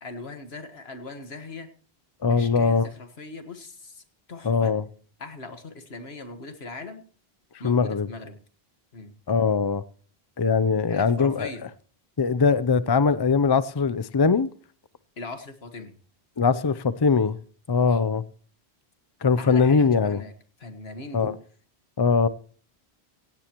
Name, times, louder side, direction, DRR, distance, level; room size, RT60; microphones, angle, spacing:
voice 1, 0.0-1.7 2.3-4.0 4.3-4.7 5.2-7.0 7.6-8.4 8.9-9.1 10.9-11.6 15.2-15.9 17.8-18.1 19.4-20.3 20.6-21.4, left 3 dB, 75° left, 1.8 m, -39 dB
voice 2, 2.2-2.9 4.4-4.9 7.6-8.1 9.3-9.8 10.4-11.5 12.2-14.5 16.4-17.4 17.7-18.2 19.2-20.2 21.1-21.3 22.0-22.3, left 5 dB, 30° left, 0.5 m, -21 dB
17.0 x 17.0 x 3.0 m
omnidirectional pair, 1.1 m